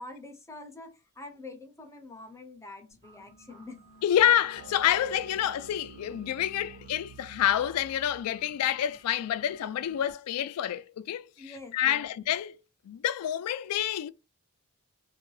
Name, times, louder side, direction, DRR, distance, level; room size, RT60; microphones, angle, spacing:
voice 1, 0.0-3.8 11.4-12.1, left 2 dB, 15° left, 0.6 m, -45 dB
sound 1, 2.9-10.1, right 2 dB, 30° right, 1.3 m, -56 dB
voice 2, 4.0-12.6 12.9-14.1, left 11 dB, 80° left, 0.3 m, -28 dB
sound 2, 4.5-8.5, right 5 dB, 80° right, 0.5 m, -48 dB
2.6 x 2.2 x 3.1 m
head